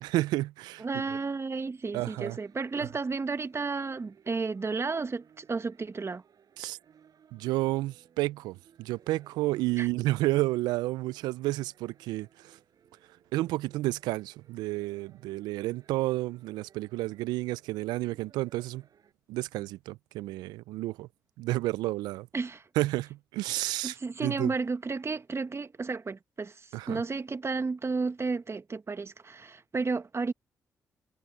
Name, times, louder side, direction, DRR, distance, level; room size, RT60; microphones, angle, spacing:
voice 1, 0.0-0.9 1.9-2.4 2.8-2.9 6.6-6.8 7.3-12.6 13.3-18.8 19.3-21.1 21.4-22.3 22.8-24.5 26.7-27.0, right 18 dB, 85° right, 0.4 m, -31 dB
voice 2, 0.8-6.2 9.8-9.9 22.3-22.6 23.8-30.3, right 4 dB, 40° right, 1.6 m, -32 dB
sound 1, 2.1-19.1, right 8 dB, 65° right, 6.3 m, -62 dB
hypercardioid pair, 45°, 7 cm